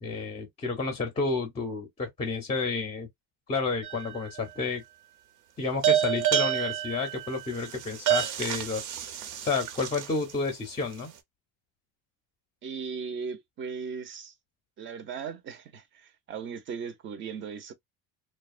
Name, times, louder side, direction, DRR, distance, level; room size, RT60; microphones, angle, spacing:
voice 1, 0.0-3.1 3.5-4.8 5.6-8.8 9.4-11.1, left 4 dB, 15° left, 0.5 m, -30 dB
sound 1, 3.8-4.4 5.8-10.3, right 12 dB, 90° right, 0.8 m, -28 dB
voice 2, 12.6-14.3 14.8-17.7, right 6 dB, 35° right, 0.5 m, -37 dB
2.7 x 2.1 x 2.3 m
cardioid pair, 160°, 37 cm